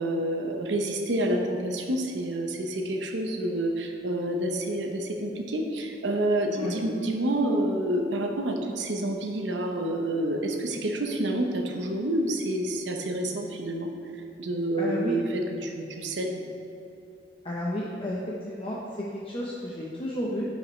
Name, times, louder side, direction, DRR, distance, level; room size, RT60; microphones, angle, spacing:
voice 1, 0.0-13.9 14.4-16.4, right 1 dB, 85° right, 3 dB, 0.9 m, -28 dB
voice 2, 14.8-15.1 17.4-18.2 18.5-18.8 19.3-20.5, left 1 dB, 30° left, -5 dB, 0.8 m, -31 dB
11.0 x 5.3 x 3.2 m, 2.8 s
head